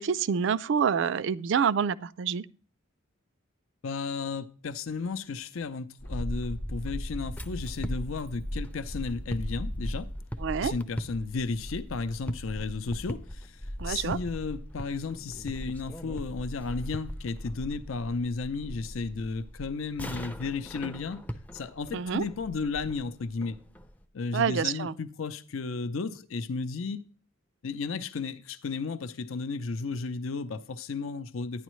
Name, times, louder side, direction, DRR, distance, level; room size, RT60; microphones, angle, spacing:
voice 1, 0.0-2.5 10.4-10.7 13.8-14.2 21.9-22.2 24.3-24.9, right 7 dB, 60° right, 0.3 m, -27 dB
voice 2, 3.8-10.1 10.6-21.2 21.5-23.6 24.1-27.0 27.6-31.6, left 4 dB, 80° left, 0.6 m, -34 dB
sound 1, 6.0-24.0, equal, 10° left, 0.4 m, -38 dB
11.0 x 9.9 x 3.1 m
head